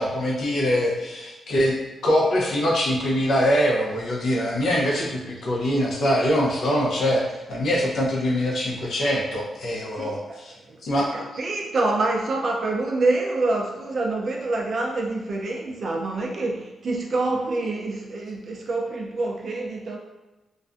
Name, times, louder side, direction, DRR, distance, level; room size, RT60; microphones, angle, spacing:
voice 1, 0.0-1.8 2.0-10.2 10.4-10.5 10.8-11.1, equal, 60° left, -3 dB, 0.6 m, -23 dB
voice 2, 10.0-10.4 10.7-20.0, right 2 dB, 45° right, 0 dB, 0.4 m, -26 dB
2.4 x 2.2 x 2.5 m, 1.1 s
wide cardioid pair, 145°, 0 cm